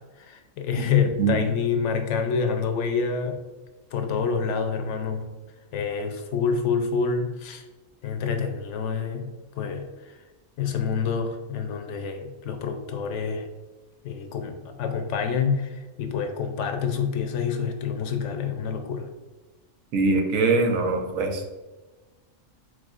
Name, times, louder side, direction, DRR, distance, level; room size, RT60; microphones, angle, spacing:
voice 1, 0.2-3.4 3.9-5.3 5.7-7.6 8.0-9.3 9.6-10.2 10.6-13.5 14.0-19.1, left 6 dB, 70° left, 6 dB, 0.8 m, -27 dB
voice 2, 19.9-21.4, right 3 dB, 85° right, 3 dB, 1.1 m, -22 dB
4.8 x 3.9 x 2.4 m, 1.2 s
omnidirectional pair, 1.4 m